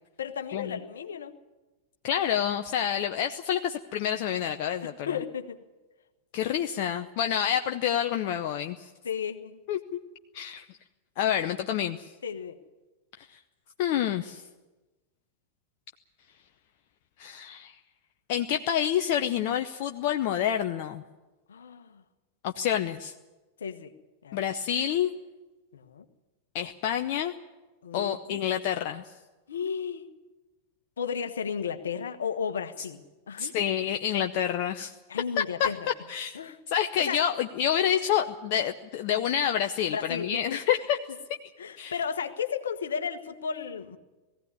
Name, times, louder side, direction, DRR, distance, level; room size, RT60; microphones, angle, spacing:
voice 1, 0.2-1.3 4.8-5.6 9.0-9.6 12.2-12.6 21.5-22.0 23.6-23.9 24.2-24.4 25.7-26.0 27.8-28.4 29.5-30.1 31.0-33.7 35.1-35.8 36.3-36.6 37.0-37.2 39.9-40.4 41.6-44.0, left 7 dB, 70° left, 10 dB, 1.3 m, -34 dB
voice 2, 2.0-5.2 6.3-8.9 9.7-10.0 10.3-10.6 11.2-12.0 13.2-13.4 13.8-14.4 17.2-17.7 18.3-21.0 22.4-23.1 24.3-25.1 26.5-27.3 27.9-29.0 33.4-34.9 35.4-35.7 36.1-36.4 36.7-41.0 41.8-42.0, left 9 dB, 50° left, 6 dB, 0.8 m, -28 dB
19.0 x 15.5 x 9.6 m, 1.2 s
figure-of-eight pair, 90°, 0 cm